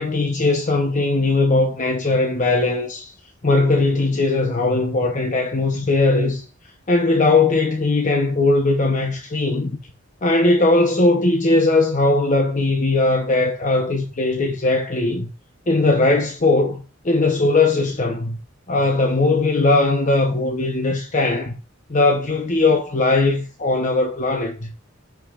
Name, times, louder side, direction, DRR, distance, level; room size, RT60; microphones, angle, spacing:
voice 1, 0.0-3.1 3.4-6.4 6.9-9.8 10.2-15.3 15.7-18.4 18.7-21.6 21.9-24.7, left 2 dB, 40° left, 1.0 m, -19 dB
14.5 x 5.3 x 2.6 m
head